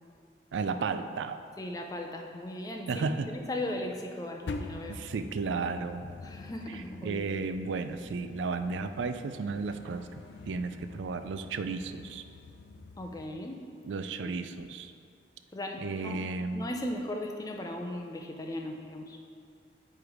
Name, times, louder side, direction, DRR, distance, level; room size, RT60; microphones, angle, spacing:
voice 1, 0.5-1.4 2.9-3.3 4.9-6.1 6.7-10.1 10.5-12.2 13.8-14.9 15.8-16.7, right 4 dB, 85° right, 9 dB, 0.4 m, -33 dB
voice 2, 1.6-5.0 6.2-7.4 13.0-13.7 14.2-14.3 15.5-16.2 16.5-19.2, left 1 dB, 20° left, 2 dB, 0.5 m, -37 dB
sound 1, 4.5-13.3, left 3 dB, 80° left, 0.4 m, -45 dB
8.8 x 3.3 x 4.7 m, 2.3 s
head